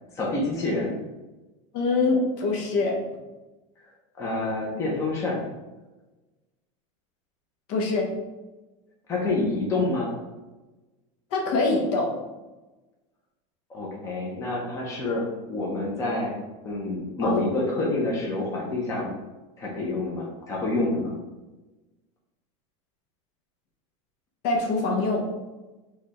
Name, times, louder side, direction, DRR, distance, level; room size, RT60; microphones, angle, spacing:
voice 1, 0.1-0.9 4.2-5.4 9.1-10.1 13.7-16.4 16.6-19.1 19.6-21.1, left 2 dB, 20° left, -3 dB, 0.8 m, -27 dB
voice 2, 1.7-2.9 7.7-8.1 11.3-12.1 17.2-17.4 24.4-25.2, left 3 dB, 50° left, 0 dB, 1.0 m, -24 dB
4.8 x 2.4 x 4.2 m, 1.1 s
supercardioid pair, 155°, 16 cm